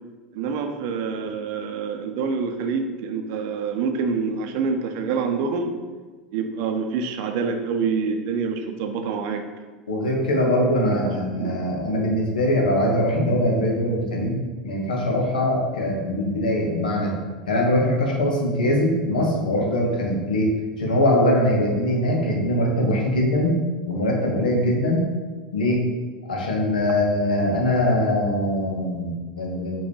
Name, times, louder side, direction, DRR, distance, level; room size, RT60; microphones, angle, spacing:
voice 1, 0.3-5.8 6.3-9.5 10.8-11.6, right 5 dB, 55° right, 6 dB, 0.5 m, -26 dB
voice 2, 9.9-14.4 14.6-17.1 17.5-20.5 20.8-23.6 23.9-25.1 25.5-25.8 26.3-29.8, left 1 dB, 80° left, -1 dB, 1.0 m, -22 dB
4.9 x 3.0 x 3.2 m, 1.4 s
hypercardioid pair, 85°, 5 cm